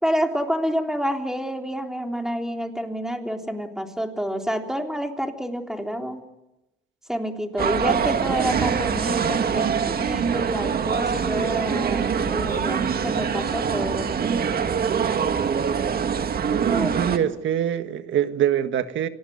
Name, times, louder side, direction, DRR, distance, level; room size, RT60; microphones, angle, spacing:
voice 1, 0.0-6.2 7.1-14.5 16.6-17.3, equal, 5° right, 3 dB, 3.6 m, -28 dB
sound 1, 7.6-17.2, right 7 dB, 50° right, 1.8 m, -24 dB
voice 2, 16.5-19.1, right 10 dB, 75° right, 10 dB, 1.7 m, -24 dB
25.5 x 19.0 x 9.6 m, 0.97 s
cardioid pair, 90°, 20 cm